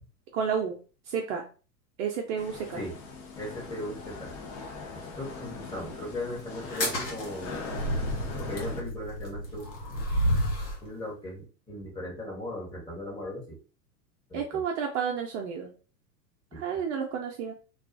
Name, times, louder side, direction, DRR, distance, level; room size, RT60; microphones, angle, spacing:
voice 1, 0.3-0.8 1.1-1.4 2.0-2.8 14.3-15.7 16.6-17.5, right 7 dB, 45° right, 2 dB, 0.5 m, -31 dB
sound 1, 2.4-8.8, left 4 dB, 50° left, 0.8 m, -41 dB
voice 2, 3.4-4.3 5.0-7.5 8.4-9.7 10.8-13.6 14.3-14.6 16.5-16.6, left 1 dB, 10° left, -5 dB, 1.0 m, -38 dB
sound 2, 6.6-10.8, equal, 85° left, 1.2 m, -30 dB
2.4 x 2.3 x 2.4 m, 0.36 s
hypercardioid pair, 100°, 50 cm